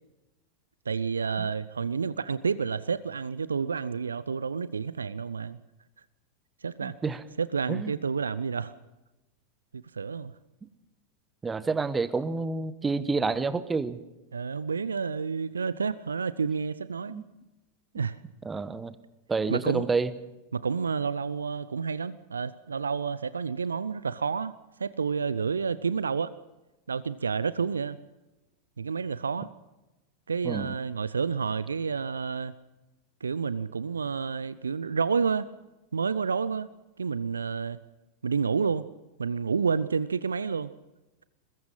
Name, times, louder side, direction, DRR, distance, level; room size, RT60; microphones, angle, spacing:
voice 1, 0.9-5.6 6.6-6.9 7.4-8.7 9.7-10.3 14.3-17.2 17.9-18.2 19.5-19.9 20.5-24.5 24.8-26.3 26.9-28.0 28.8-29.5 30.3-32.5 33.2-35.5 35.9-36.7 37.0-37.8 38.2-38.9 39.2-40.7, right 5 dB, 75° right, 17 dB, 0.6 m, -29 dB
voice 2, 6.8-7.2 7.7-7.9 11.4-14.0 17.1-17.2 18.4-18.9 19.3-20.1 30.4-30.7, right 4 dB, 15° right, 15 dB, 1.2 m, -29 dB
23.0 x 20.5 x 5.6 m, 1.0 s
figure-of-eight pair, 90°, 0 cm